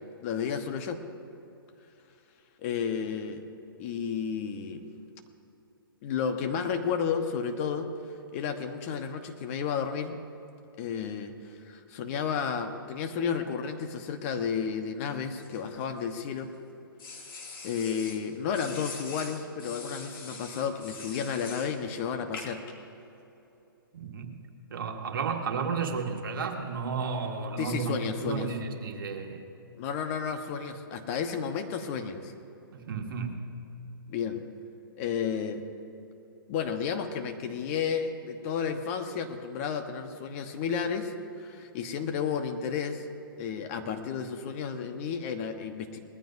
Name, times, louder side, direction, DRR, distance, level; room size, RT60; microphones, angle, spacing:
voice 1, 0.2-1.0 2.6-3.5 3.8-4.8 6.0-7.9 8.3-10.2 10.8-16.5 17.6-22.6 27.6-28.5 29.8-32.3 34.1-34.5 35.0-35.6 36.5-43.0 43.4-46.0, left 6 dB, 35° left, 6 dB, 1.2 m, -32 dB
sound 1, 15.4-16.4 17.0-18.2 18.5-21.8 22.3-22.7, left 4 dB, 70° left, 2.6 m, -43 dB
voice 2, 23.9-24.4 24.7-29.4 32.7-33.4, right 5 dB, 65° right, 3 dB, 1.8 m, -33 dB
20.5 x 14.5 x 2.7 m, 2.9 s
hypercardioid pair, 130°, 12 cm